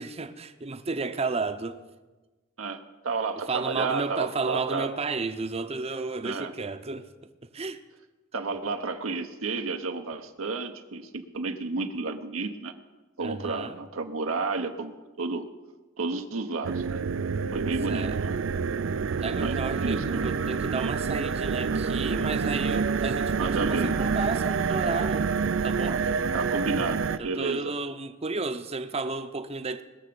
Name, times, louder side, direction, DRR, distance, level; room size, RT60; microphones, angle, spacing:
voice 1, 0.0-1.8 3.5-7.8 13.2-13.8 17.9-18.2 19.2-25.3 25.6-26.0 27.2-29.8, right 3 dB, 30° right, 0.7 m, -32 dB
voice 2, 3.0-4.9 6.2-6.5 8.3-12.7 13.2-14.9 15.2-15.4 16.0-17.0 17.5-18.4 19.4-20.0 23.4-24.0 26.3-27.7, right 3 dB, 85° right, 0.9 m, -31 dB
sound 1, 16.6-27.2, right 5 dB, 65° right, 0.4 m, -27 dB
20.5 x 6.9 x 6.9 m
head